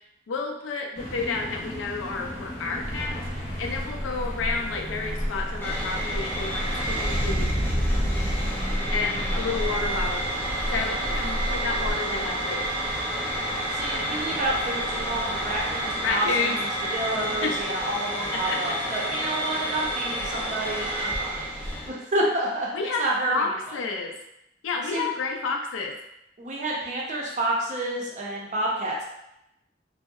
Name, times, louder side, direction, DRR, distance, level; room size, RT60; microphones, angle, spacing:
voice 1, 0.3-3.2 3.6-7.5 8.9-10.3 10.7-12.7 16.0-16.6 17.4-17.6 18.3-18.8 22.7-24.1 24.6-26.0, left 4 dB, 85° left, 2 dB, 0.4 m, -30 dB
sound 1, 0.9-16.2, equal, 45° left, 0.7 m, -38 dB
sound 2, 2.8-11.9, equal, 85° right, 0.8 m, -32 dB
sound 3, 5.6-21.9, right 1 dB, 10° left, 0.4 m, -29 dB
voice 2, 7.9-8.2 13.7-22.7 23.0-23.8 24.9-25.1 26.4-29.0, right 1 dB, 40° right, -3 dB, 0.5 m, -29 dB
2.7 x 2.0 x 2.3 m, 0.83 s
head